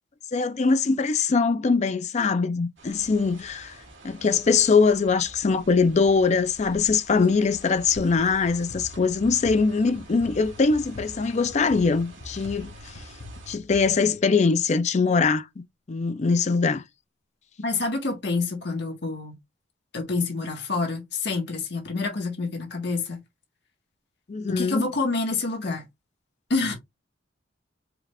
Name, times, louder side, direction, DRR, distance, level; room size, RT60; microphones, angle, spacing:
voice 1, 0.3-3.7 4.0-12.7 13.5-15.4 15.9-16.8 24.3-24.9, left 4 dB, 35° left, 0.4 m, -22 dB
sound 1, 2.8-13.6, right 2 dB, 75° right, 2.0 m, -48 dB
sound 2, 8.0-14.6, left 2 dB, 75° left, 0.8 m, -44 dB
voice 2, 17.6-19.3 19.9-23.2 24.5-25.8 26.5-26.7, left 3 dB, 60° left, 1.4 m, -27 dB
4.8 x 2.4 x 3.4 m
head